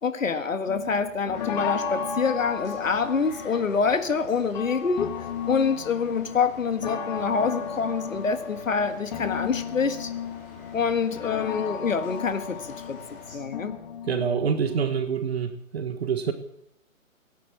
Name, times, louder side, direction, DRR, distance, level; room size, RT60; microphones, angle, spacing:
voice 1, 0.0-5.1 5.5-10.1 10.7-12.6 12.9-13.7, left 5 dB, 65° left, 9 dB, 1.8 m, -26 dB
sound 1, 0.7-14.8, left 6 dB, 30° left, 1.7 m, -35 dB
sound 2, 1.3-13.4, left 3 dB, 15° left, 5.2 m, -48 dB
voice 2, 14.1-16.3, right 7 dB, 45° right, 9 dB, 1.5 m, -26 dB
17.5 x 11.0 x 7.3 m, 0.78 s
figure-of-eight pair, 140°, 42 cm